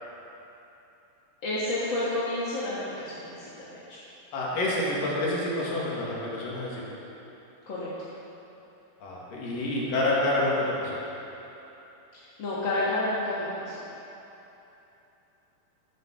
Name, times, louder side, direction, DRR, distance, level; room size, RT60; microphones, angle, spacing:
voice 1, 1.4-4.0 7.6-7.9 12.1-13.8, left 2 dB, 45° left, -9 dB, 1.6 m, -30 dB
voice 2, 4.3-6.8 9.0-11.0, left 1 dB, 65° left, -5 dB, 3.6 m, -28 dB
12.0 x 9.3 x 6.3 m, 3.0 s
omnidirectional pair, 4.4 m